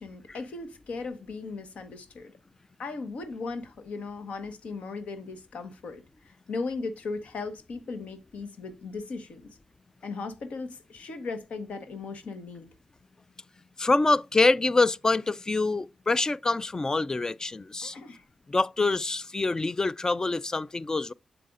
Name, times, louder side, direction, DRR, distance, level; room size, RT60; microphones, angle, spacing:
voice 1, 0.0-2.3 2.8-6.0 6.5-9.4 10.0-12.7 17.8-18.2, left 4 dB, 75° left, 1.2 m, -37 dB
voice 2, 13.8-17.9 18.5-21.1, left 3 dB, 30° left, 0.4 m, -25 dB
7.6 x 6.6 x 2.5 m
cardioid pair, 60°, 2 cm